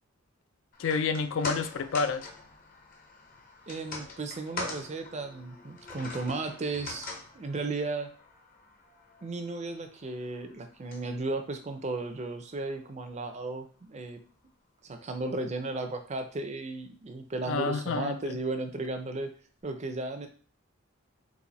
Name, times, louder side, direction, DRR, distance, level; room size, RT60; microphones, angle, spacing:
sound 1, 0.7-13.1 13.4-13.5, left 3 dB, 40° left, 0.8 m, -44 dB
voice 1, 0.8-2.3 17.5-18.4, left 4 dB, 65° left, 10 dB, 0.4 m, -29 dB
voice 2, 3.7-8.1 9.2-14.2 14.8-19.3 19.6-20.3, right 3 dB, 35° right, 6 dB, 0.5 m, -35 dB
4.1 x 2.6 x 4.0 m, 0.42 s
head